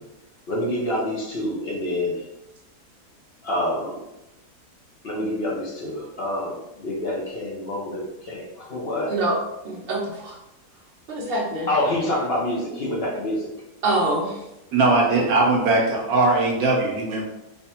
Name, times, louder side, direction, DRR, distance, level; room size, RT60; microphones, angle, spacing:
voice 1, 0.5-2.2 3.4-4.0 5.0-8.0 8.3-9.1 11.7-13.5, left 1 dB, 55° left, -3 dB, 0.7 m, -27 dB
voice 2, 9.6-10.3 11.1-11.7 13.8-14.4, right 2 dB, 45° right, -2 dB, 1.0 m, -25 dB
voice 3, 14.7-17.2, right 3 dB, 70° right, -1 dB, 1.1 m, -20 dB
3.3 x 2.2 x 4.2 m, 0.91 s
omnidirectional pair, 1.7 m